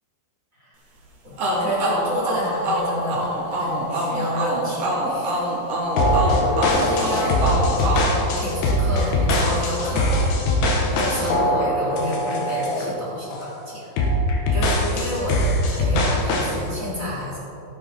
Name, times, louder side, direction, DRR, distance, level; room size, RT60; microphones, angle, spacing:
voice 1, 1.2-5.5 6.0-6.4 6.6-7.9 8.2-13.9 14.5-17.4, equal, 20° right, -7 dB, 2.4 m, -30 dB
sound 1, 1.4-9.0, right 1 dB, 45° right, 2.3 m, -25 dB
sound 2, 6.0-12.9 13.3-13.6 14.0-16.6, left 1 dB, 85° left, 3.9 m, -21 dB
14.5 x 10.0 x 4.5 m, 3.0 s
omnidirectional pair, 5.3 m